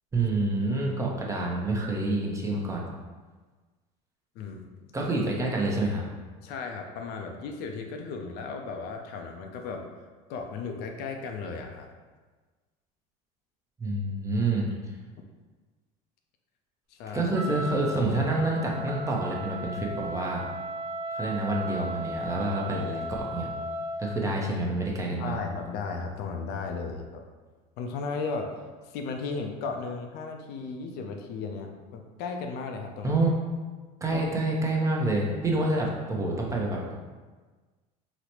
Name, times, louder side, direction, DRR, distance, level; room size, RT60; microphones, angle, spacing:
voice 1, 0.1-2.9 4.9-6.0 13.8-14.7 17.1-20.4 21.1-23.5 24.0-25.4 33.0-33.3 34.0-36.9, right 2 dB, 15° right, -2 dB, 0.6 m, -27 dB
voice 2, 4.4-4.9 6.4-9.9 10.3-11.9 15.2-15.3 16.9-17.3 25.2-27.2 27.8-28.6 28.8-33.2 34.1-34.2, left 4 dB, 60° left, 4 dB, 0.5 m, -35 dB
Wind instrument woodwind instrument, 17.3-24.1, equal, 80° right, 0.6 m, -36 dB
4.0 x 2.1 x 2.9 m, 1.4 s
supercardioid pair, 100°, 19 cm